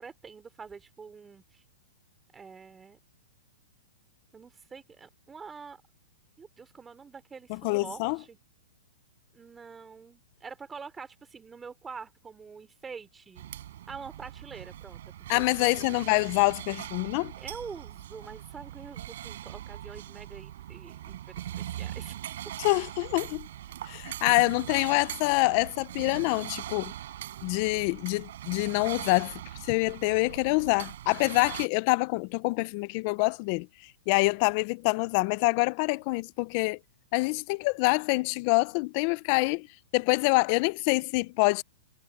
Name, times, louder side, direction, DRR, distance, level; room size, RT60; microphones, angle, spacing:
voice 1, 0.0-1.6 2.3-3.0 4.3-5.8 6.4-8.4 9.3-13.5 13.9-15.7 17.4-22.1, right 5 dB, 10° right, 3.4 m, -45 dB
voice 2, 7.5-8.2 15.3-17.3 22.6-23.5 23.9-26.9 27.4-29.3 29.6-33.7 34.1-36.8 37.1-39.7 39.9-41.6, left 26 dB, 40° left, 0.6 m, -26 dB
sound 1, 13.4-31.7, right 12 dB, 65° right, 4.7 m, -41 dB
hypercardioid pair, 145°, 0 cm